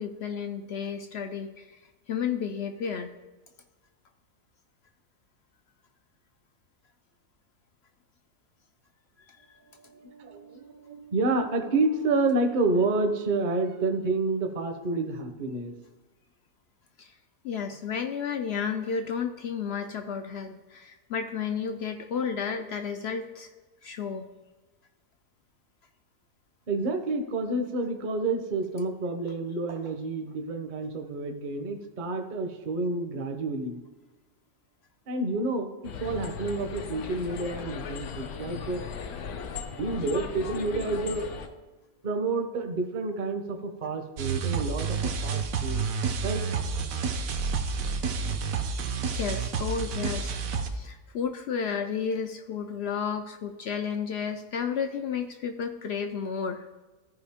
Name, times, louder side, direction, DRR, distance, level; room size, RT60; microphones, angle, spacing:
voice 1, 0.0-1.7 2.1-3.2 17.0-17.1 17.4-23.5 23.8-24.3 48.2-48.3 49.1-50.3 50.7-56.7, left 6 dB, 70° left, 7 dB, 0.6 m, -32 dB
voice 2, 9.9-15.7 26.7-33.8 35.1-39.2 39.7-41.6 42.0-45.8 46.2-46.4, right 3 dB, 40° right, 6 dB, 0.7 m, -29 dB
sound 1, 35.8-41.5, left 7 dB, 85° left, 1.2 m, -37 dB
sound 2, 44.2-50.7, right 5 dB, 70° right, 1.1 m, -29 dB
14.0 x 5.0 x 3.5 m, 1.2 s
omnidirectional pair, 1.6 m